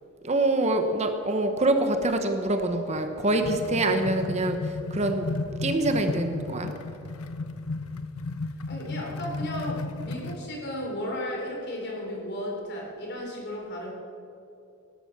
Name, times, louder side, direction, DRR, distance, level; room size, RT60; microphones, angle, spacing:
voice 1, 0.2-5.3 5.6-6.7, right 2 dB, 30° right, 6 dB, 1.0 m, -25 dB
sound 1, 2.9-10.5, left 3 dB, 90° left, 0.9 m, -34 dB
voice 2, 8.7-13.9, left 1 dB, 50° left, -1 dB, 4.0 m, -34 dB
18.5 x 12.0 x 6.1 m, 2.8 s
head